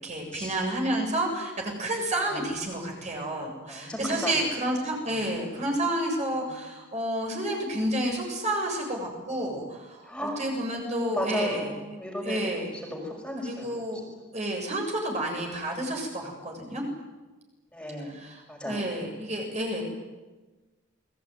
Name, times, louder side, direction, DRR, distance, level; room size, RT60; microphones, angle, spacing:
voice 1, 0.0-11.7 12.2-12.7 13.4-14.0 14.3-16.8 18.1-19.8, right 1 dB, 35° right, 1 dB, 7.6 m, -30 dB
voice 2, 3.7-4.3 10.1-10.4 10.7-12.6 12.9-13.7 17.7-18.2 18.5-18.8, equal, 5° left, 0 dB, 5.5 m, -34 dB
29.0 x 21.0 x 9.5 m, 1.2 s
head